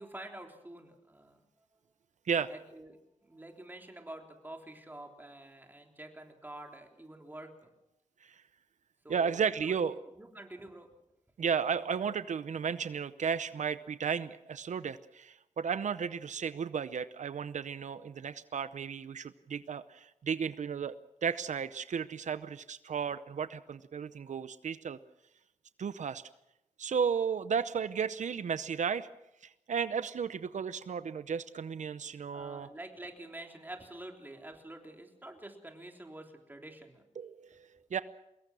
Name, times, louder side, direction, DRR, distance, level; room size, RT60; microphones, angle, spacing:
voice 1, 0.0-1.4 2.5-7.7 9.0-10.9 32.3-37.0, right 1 dB, 15° right, 3 dB, 3.5 m, -48 dB
voice 2, 9.1-9.9 11.4-20.9 21.2-25.0 25.8-26.2 26.8-29.1 29.4-32.7 37.2-38.0, right 6 dB, 80° right, 13 dB, 0.7 m, -34 dB
24.5 x 21.0 x 6.2 m, 0.87 s
wide cardioid pair, 125°, 12 cm